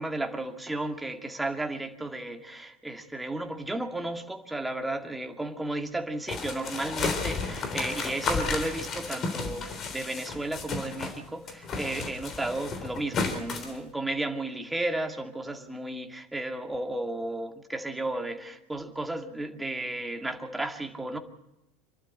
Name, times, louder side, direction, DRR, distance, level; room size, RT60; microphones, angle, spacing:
voice 1, 0.0-21.2, right 2 dB, 10° right, 4 dB, 2.4 m, -33 dB
sound 1, 6.3-11.2 11.5-13.8, left 4 dB, 40° left, 3.5 m, -33 dB
27.0 x 12.0 x 8.8 m, 0.91 s
hypercardioid pair, 80°, 0 cm